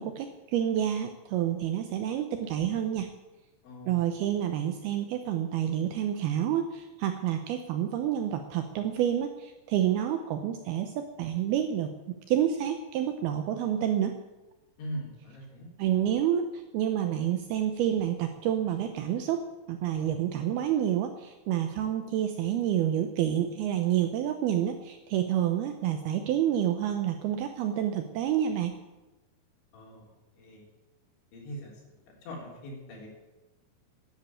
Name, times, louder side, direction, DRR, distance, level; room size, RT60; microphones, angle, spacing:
voice 1, 0.0-3.1 3.9-11.9 12.3-14.2 15.8-28.7, right 10 dB, 80° right, 6 dB, 2.3 m, -28 dB
voice 2, 3.6-4.0 14.8-15.7 29.7-30.1 30.4-30.6 31.3-31.7 32.2-33.1, equal, 90° left, -3 dB, 6.0 m, -41 dB
10.5 x 10.5 x 9.0 m, 1.1 s
omnidirectional pair, 5.2 m